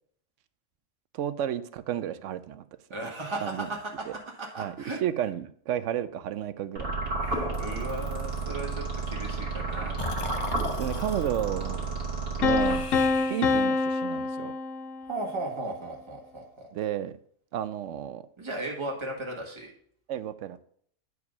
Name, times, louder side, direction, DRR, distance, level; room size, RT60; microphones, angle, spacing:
voice 1, 1.1-2.6 3.4-3.7 4.1-4.2 4.6-4.8 5.0-6.9 9.8-10.0 10.8-11.9 12.4-12.9 13.2-14.5 16.7-17.1 17.5-18.2 20.1-20.6, right 10 dB, 70° right, 14 dB, 0.9 m, -32 dB
voice 2, 2.9-4.0 4.4-5.0 7.1-10.0 15.0-16.7 18.4-19.7, right 2 dB, 20° right, -1 dB, 1.7 m, -36 dB
sound 1, 6.8-13.3, right 3 dB, 45° right, 1.9 m, -32 dB
Breathing, 10.0-11.3 12.6-13.8, left 3 dB, 30° left, 0.6 m, -38 dB
Piano, 12.4-15.3, left 3 dB, 75° left, 1.1 m, -26 dB
9.5 x 4.9 x 5.4 m, 0.62 s
omnidirectional pair, 1.4 m